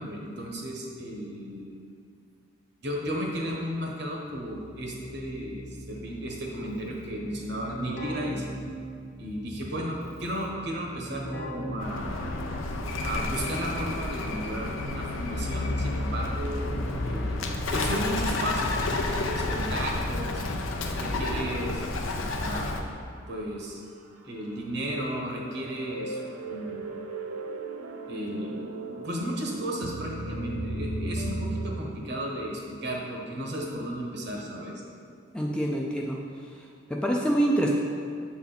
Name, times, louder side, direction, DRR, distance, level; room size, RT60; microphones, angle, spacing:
voice 1, 0.0-1.8 2.8-8.5 9.2-12.1 13.0-20.4 21.0-21.9 22.4-22.7 23.3-23.8 24.2-26.2 26.5-26.9 28.1-28.6 29.0-34.8, equal, 55° right, -1 dB, 1.0 m, -34 dB
Keyboard (musical), 4.3-12.6, right 1 dB, 50° left, 1.0 m, -41 dB
Bird, 11.8-22.8, left 2 dB, 75° left, 0.6 m, -30 dB
sound 1, 21.6-22.6 23.1-23.2 24.3-31.8, right 2 dB, 90° right, 0.5 m, -36 dB
voice 2, 35.3-36.2 36.9-37.7, right 1 dB, 5° left, -2 dB, 0.4 m, -25 dB
7.2 x 4.2 x 4.0 m, 2.3 s
head